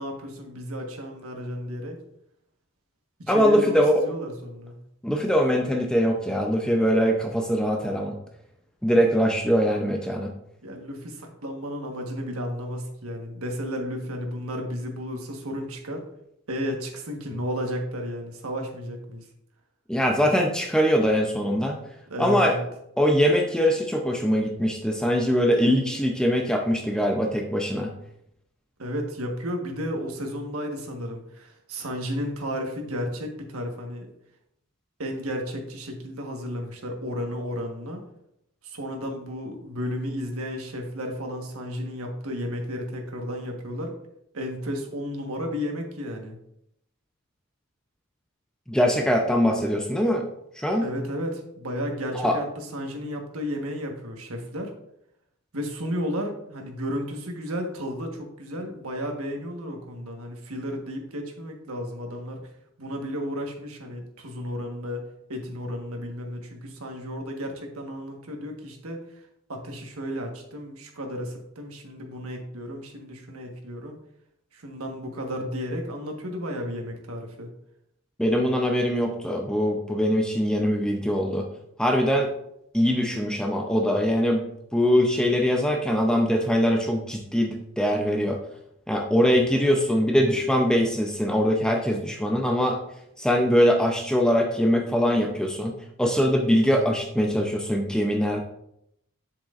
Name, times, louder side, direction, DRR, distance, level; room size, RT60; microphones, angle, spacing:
voice 1, 0.0-2.0 3.2-4.8 10.6-16.0 16.5-19.2 22.1-22.7 28.8-34.1 35.0-38.0 38.6-43.9 44.3-46.4 50.8-54.7 55.5-62.4 62.8-65.0 65.3-69.0 69.5-74.0 74.5-77.5, equal, 85° right, 2 dB, 1.4 m, -33 dB
voice 2, 3.3-4.0 5.0-8.1 8.8-10.3 19.9-21.8 22.2-22.6 23.0-27.9 48.7-50.3 50.6-50.9 52.2-52.4 78.2-81.5 81.8-82.3 82.7-84.4 84.7-88.4 88.9-92.8 93.2-98.4, equal, 5° left, 2 dB, 0.5 m, -22 dB
7.7 x 7.2 x 2.5 m, 0.78 s
head